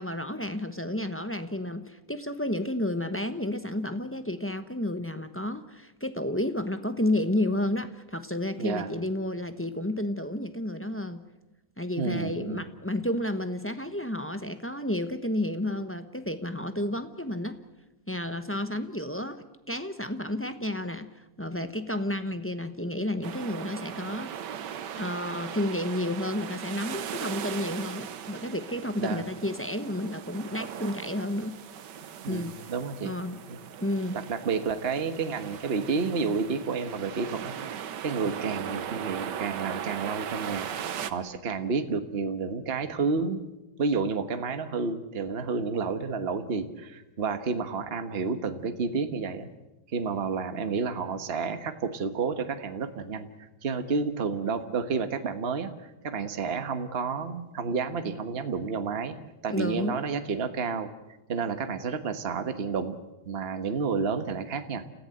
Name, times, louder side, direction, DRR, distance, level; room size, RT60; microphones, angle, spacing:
voice 1, 0.0-11.2 11.8-17.6 18.1-24.3 25.0-31.6 32.3-32.6 33.0-33.4 33.8-34.2 59.5-60.0, left 1 dB, 10° left, 9 dB, 0.8 m, -31 dB
voice 2, 8.6-8.9 12.0-12.6 29.0-29.2 32.0-33.1 33.5-33.6 34.3-43.4 43.8-49.5 49.9-59.2 59.4-60.9 61.3-63.0 63.2-64.8, right 5 dB, 40° right, 8 dB, 1.4 m, -30 dB
sound 1, 23.2-41.1, right 8 dB, 90° right, 1.6 m, -38 dB
29.5 x 15.0 x 7.9 m, 1.0 s
omnidirectional pair, 1.8 m